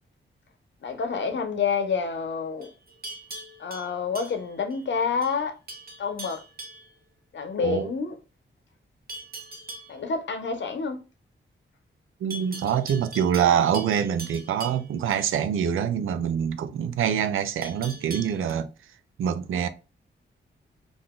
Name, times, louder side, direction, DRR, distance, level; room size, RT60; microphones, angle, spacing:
voice 1, 0.8-2.7 3.6-5.6 6.0-6.4 7.3-8.2 9.9-11.0, left 5 dB, 65° left, 0.7 m, -28 dB
Livestock farm animals working animals, 2.6-4.8 5.2-5.4 5.7-6.9 9.1-10.0 12.3-15.3 17.6-18.5, right 2 dB, 50° right, 0.9 m, -41 dB
voice 2, 12.2-18.7 19.2-19.7, right 8 dB, 85° right, 0.4 m, -25 dB
2.5 x 2.3 x 3.6 m
cardioid pair, 55°, 20 cm